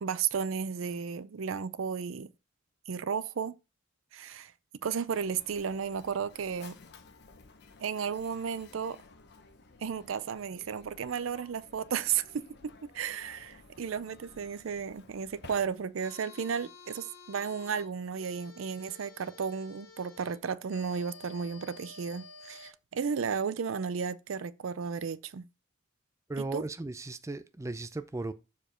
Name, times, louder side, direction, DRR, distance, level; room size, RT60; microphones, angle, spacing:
voice 1, 0.0-2.3 2.9-3.5 4.1-4.5 4.8-6.8 7.8-9.0 9.8-25.5 26.5-26.6, right 6 dB, 75° right, 0.5 m, -34 dB
Mechanisms, 5.0-16.1, left 3 dB, 55° left, 0.9 m, -55 dB
sound 1, 16.0-22.7, left 4 dB, 80° left, 1.7 m, -52 dB
voice 2, 26.3-28.3, right 2 dB, 15° right, 0.5 m, -36 dB
7.0 x 4.7 x 4.3 m
head